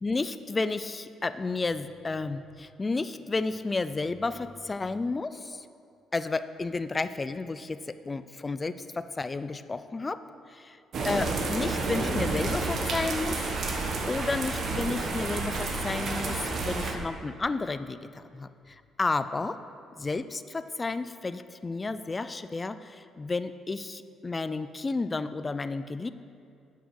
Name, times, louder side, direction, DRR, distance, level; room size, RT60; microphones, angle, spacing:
voice 1, 0.0-5.7 6.1-10.2 10.5-10.8 11.0-13.7 14.1-19.6 20.0-26.1, left 3 dB, 20° left, 12 dB, 0.3 m, -32 dB
sound 1, 10.9-16.9, right 3 dB, 50° right, 1.0 m, -30 dB
8.3 x 6.1 x 6.4 m, 2.4 s
cardioid pair, 135°, 0 cm